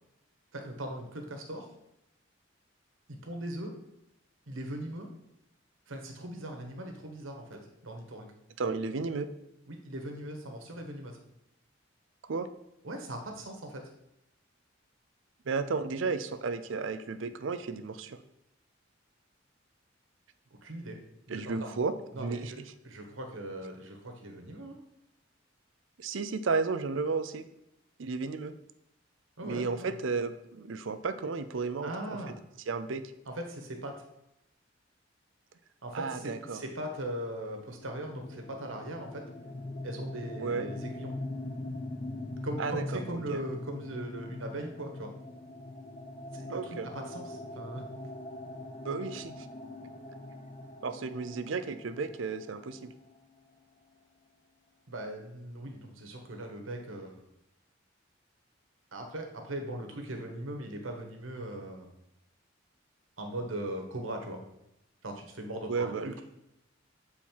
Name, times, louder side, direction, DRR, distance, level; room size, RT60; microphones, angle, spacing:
voice 1, 0.5-1.7 3.1-3.7 4.5-5.1 5.9-8.3 9.7-11.2 12.8-13.8 20.6-21.0 21.3-21.7 22.1-22.6 22.8-24.8 29.4-29.9 31.8-32.4 33.3-34.0 35.8-39.2 39.8-41.1 42.4-45.1 46.3-47.8 54.9-57.2 58.9-61.9 63.2-64.4 65.0-66.2, right 1 dB, 90° right, 3 dB, 1.3 m, -39 dB
voice 2, 8.6-9.3 12.2-12.5 15.5-18.2 21.3-22.5 26.0-27.4 28.0-28.5 29.4-31.9 32.7-33.0 35.9-36.6 40.4-40.7 42.6-43.4 46.5-46.9 48.8-49.5 50.8-52.9 65.7-66.2, right 4 dB, 70° right, 10 dB, 0.5 m, -33 dB
sound 1, 37.7-53.3, left 2 dB, 35° left, 0.7 m, -42 dB
7.3 x 4.3 x 4.6 m, 0.85 s
head